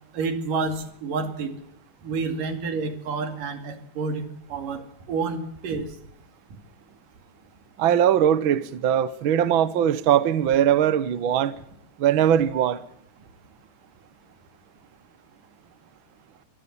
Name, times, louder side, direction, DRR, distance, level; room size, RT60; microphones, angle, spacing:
voice 1, 0.1-1.5 2.0-4.2 4.5-4.8 5.1-5.9, right 4 dB, 80° right, 4.2 m, -29 dB
voice 2, 7.8-11.6 12.0-12.8, right 10 dB, 60° right, 1.4 m, -20 dB
25.5 x 17.0 x 7.2 m
omnidirectional pair, 3.7 m